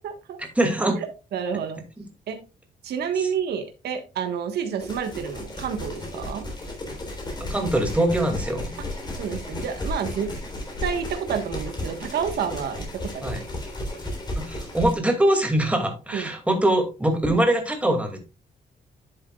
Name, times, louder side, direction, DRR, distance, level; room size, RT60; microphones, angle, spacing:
voice 1, 0.0-0.4 1.3-1.8 2.3-2.4 2.8-6.5 9.2-10.3 10.8-12.8 13.1-13.4 16.1-16.3, right 7 dB, 80° right, 6 dB, 1.4 m, -29 dB
voice 2, 0.6-1.0 3.2-3.3 7.4-8.7 13.2-13.4 14.5-18.2, right 1 dB, 10° right, 3 dB, 2.4 m, -23 dB
sound 1, 4.8-14.9, left 1 dB, 25° left, 3.6 m, -33 dB
11.0 x 7.9 x 2.4 m, 0.28 s
cardioid pair, 135°, 16 cm